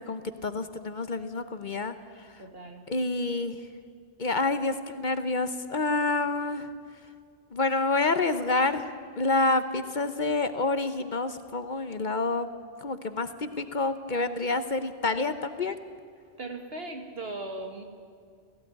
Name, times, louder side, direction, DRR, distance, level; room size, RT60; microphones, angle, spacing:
voice 1, 0.1-2.3 2.9-3.6 4.2-6.7 7.5-8.9 9.2-12.5 12.8-15.8, left 3 dB, 45° left, 10 dB, 1.0 m, -28 dB
voice 2, 2.4-2.8 16.4-17.8, right 2 dB, 60° right, 4 dB, 2.3 m, -38 dB
17.0 x 16.5 x 9.4 m, 2.2 s
omnidirectional pair, 1.1 m